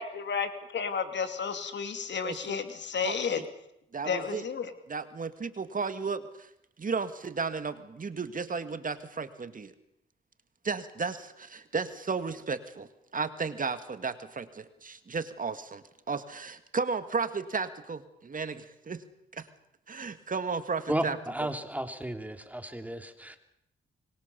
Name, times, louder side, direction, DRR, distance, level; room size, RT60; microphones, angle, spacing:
voice 1, 0.0-3.4 4.0-4.7, left 6 dB, 65° left, 9 dB, 2.7 m, -32 dB
voice 2, 3.9-4.4 4.9-6.5 6.8-9.7 10.6-12.9 13.1-19.0 19.3-19.5 19.9-21.2, right 5 dB, 45° right, 10 dB, 2.0 m, -34 dB
voice 3, 20.9-23.4, right 1 dB, 5° right, 7 dB, 3.0 m, -33 dB
25.0 x 22.0 x 7.0 m, 0.80 s
cardioid pair, 75°, 20 cm